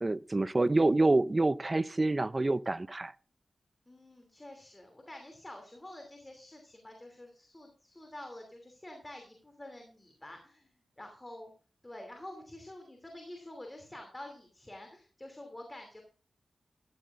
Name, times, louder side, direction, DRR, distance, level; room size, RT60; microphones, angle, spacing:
voice 1, 0.0-3.1, right 2 dB, 30° right, 0.5 m, -27 dB
voice 2, 3.9-10.7 11.0-11.5 11.8-16.0, left 1 dB, 20° left, 2.8 m, -48 dB
14.0 x 14.0 x 2.5 m
wide cardioid pair, 80°, 0 cm